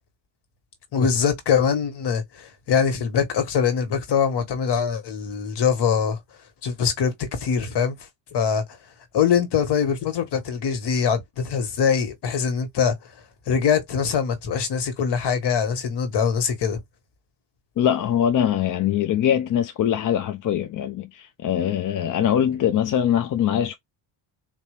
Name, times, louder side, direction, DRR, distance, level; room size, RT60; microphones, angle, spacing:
voice 1, 0.9-6.2 6.6-8.0 8.3-8.6 9.1-12.9 13.5-16.8, left 7 dB, 60° left, 1.8 m, -23 dB
voice 2, 17.8-23.8, left 10 dB, 45° left, 0.6 m, -22 dB
4.2 x 2.9 x 3.3 m
cardioid pair, 130°, 46 cm